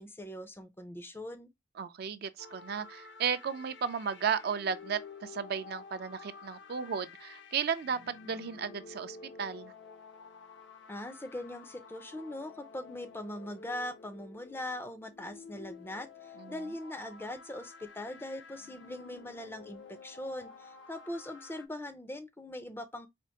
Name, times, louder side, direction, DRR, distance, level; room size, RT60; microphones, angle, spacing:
voice 1, 0.0-1.5 10.9-23.1, left 1 dB, 10° left, 0.4 m, -41 dB
voice 2, 1.8-9.7 16.4-16.5, right 6 dB, 55° right, 0.4 m, -34 dB
sound 1, 2.4-21.7, left 4 dB, 65° left, 0.5 m, -51 dB
4.3 x 2.4 x 2.7 m
head